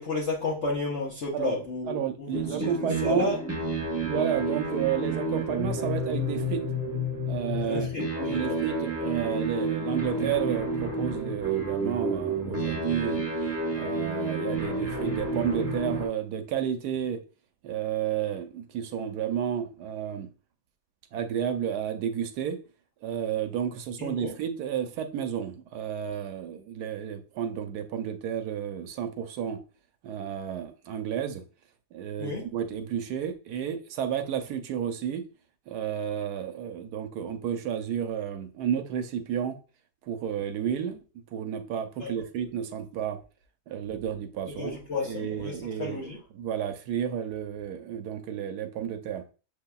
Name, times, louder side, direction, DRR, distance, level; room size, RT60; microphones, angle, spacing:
voice 1, 0.0-3.5 7.7-8.6 24.0-24.3 32.2-32.5 42.0-42.1 44.5-46.2, left 3 dB, 50° left, 1.1 m, -32 dB
voice 2, 1.9-3.3 4.0-6.6 7.3-13.3 13.7-17.2 17.6-20.3 21.1-22.6 23.0-29.6 30.0-31.4 31.9-35.2 35.7-39.6 40.1-41.0 41.3-43.2 43.7-46.1 46.3-49.2, right 9 dB, 75° right, 1.1 m, -31 dB
sound 1, 2.3-16.1, right 2 dB, 10° right, 0.8 m, -30 dB
6.7 x 2.8 x 2.3 m
omnidirectional pair, 1.8 m